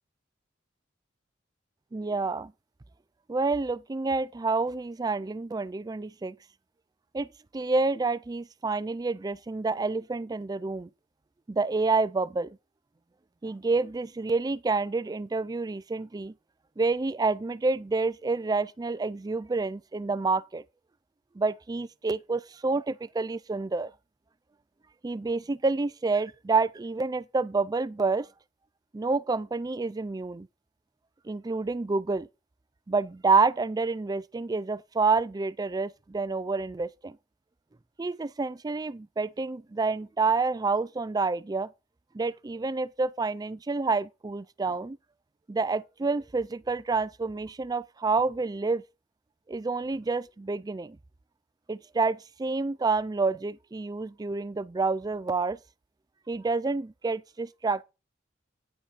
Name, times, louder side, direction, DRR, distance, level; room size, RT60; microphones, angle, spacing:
voice 1, 1.9-2.5 3.3-6.4 7.1-7.3 7.5-10.9 11.5-12.6 13.4-16.3 16.8-20.6 21.4-23.9 25.0-28.3 28.9-30.5 31.3-32.3 32.9-37.2 38.0-41.7 42.1-45.0 45.5-48.8 49.5-51.0 51.7-55.6 56.3-57.8, right 3 dB, 20° right, 0.4 m, -28 dB
9.9 x 5.3 x 4.9 m
head